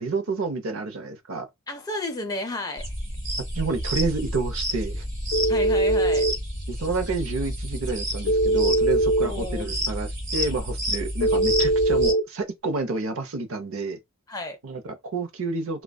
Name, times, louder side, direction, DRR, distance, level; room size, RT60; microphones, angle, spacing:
voice 1, 0.0-1.5 3.5-5.0 6.7-14.0 14.6-15.8, right 3 dB, 65° right, 0.6 m, -29 dB
voice 2, 1.7-2.9 5.5-6.3 9.2-9.8 14.3-14.6, left 1 dB, 15° left, 0.4 m, -32 dB
sound 1, 2.8-12.1, equal, 40° right, 1.5 m, -30 dB
Telephone, 5.3-6.3 8.3-9.3 11.2-12.2, right 1 dB, 85° left, 0.5 m, -21 dB
2.5 x 2.2 x 2.2 m
head